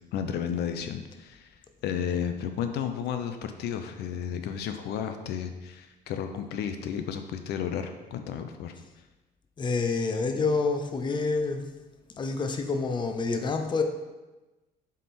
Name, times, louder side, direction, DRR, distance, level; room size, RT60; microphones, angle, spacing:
voice 1, 0.1-1.5 1.8-8.7, left 8 dB, 75° left, 7 dB, 0.6 m, -32 dB
voice 2, 9.6-11.7 12.2-13.8, left 4 dB, 30° left, 5 dB, 0.6 m, -27 dB
7.3 x 3.7 x 4.2 m, 1.1 s
cardioid pair, 110°, 17 cm